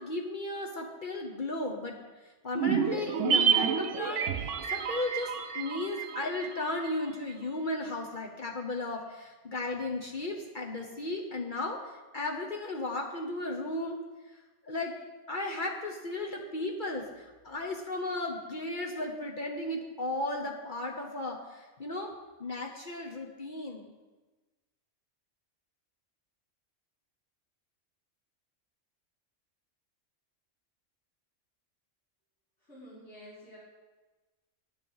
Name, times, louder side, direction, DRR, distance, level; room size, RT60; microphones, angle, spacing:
voice 1, 0.0-2.0 2.2-14.0 14.6-14.9 15.3-22.1 22.4-23.9, left 2 dB, 45° left, 1 dB, 1.0 m, -35 dB
sound 1, 2.6-7.1 7.3-7.4, right 7 dB, 80° right, 1.1 m, -29 dB
voice 2, 32.6-33.6, equal, 70° left, -13 dB, 4.4 m, -50 dB
9.6 x 7.4 x 5.5 m, 1.2 s
omnidirectional pair, 1.3 m